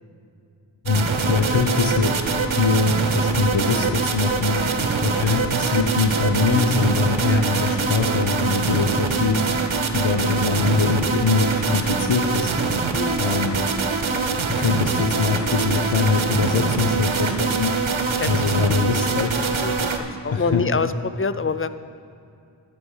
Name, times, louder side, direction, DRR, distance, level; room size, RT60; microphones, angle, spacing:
voice 1, 0.8-2.2 2.5-9.6 9.9-12.5 13.2-13.6 14.5-17.7 18.3-19.3 20.3-20.6, left 4 dB, 75° left, 3 dB, 1.0 m, -22 dB
sound 1, 0.9-20.0, right 4 dB, 80° right, 0.9 m, -24 dB
sound 2, 1.2-17.7, right 5 dB, 20° right, 1.5 m, -33 dB
voice 2, 12.9-13.3 15.1-15.3 18.2-18.3 19.2-19.3 19.6-21.7, left 4 dB, 30° left, 12 dB, 0.4 m, -26 dB
11.5 x 5.2 x 8.0 m, 2.4 s
wide cardioid pair, 50°, 46 cm